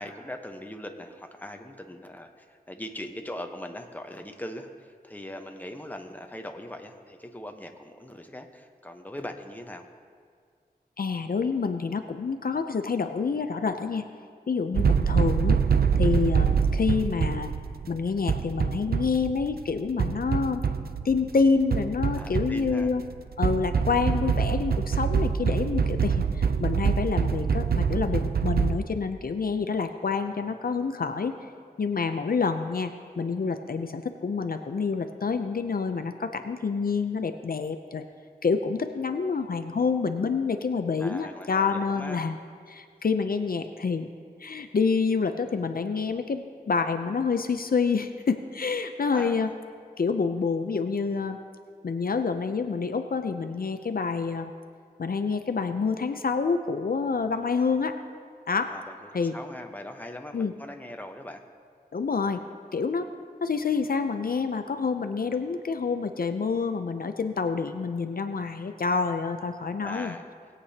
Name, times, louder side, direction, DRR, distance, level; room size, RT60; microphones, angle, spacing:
voice 1, 0.0-9.9 22.1-22.9 41.0-42.3 49.1-49.5 58.7-61.4 69.8-70.3, left 1 dB, 10° left, 4 dB, 1.0 m, -40 dB
voice 2, 11.0-14.1 14.5-15.6 16.0-17.5 17.9-20.6 21.0-23.0 23.4-31.4 31.8-38.0 38.4-42.4 42.7-44.1 44.4-49.5 50.0-51.4 51.8-54.5 55.0-58.0 58.5-58.7 59.1-59.4 60.3-60.5 61.9-62.4 62.7-63.1 63.4-70.1, left 5 dB, 65° left, 7 dB, 0.5 m, -27 dB
sound 1, 14.7-28.8, right 6 dB, 70° right, 0.5 m, -25 dB
20.0 x 8.4 x 2.8 m, 2.1 s
wide cardioid pair, 55°, 16 cm